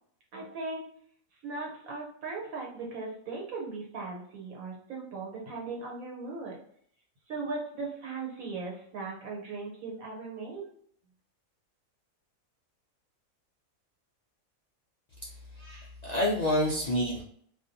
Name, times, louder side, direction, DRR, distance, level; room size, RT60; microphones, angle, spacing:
voice 1, 0.3-0.8 1.4-6.6 7.3-10.7, right 3 dB, 85° right, -1 dB, 1.3 m, -38 dB
voice 2, 15.2-17.2, left 1 dB, 90° left, -5 dB, 0.3 m, -29 dB
2.5 x 2.3 x 2.6 m, 0.63 s
omnidirectional pair, 1.4 m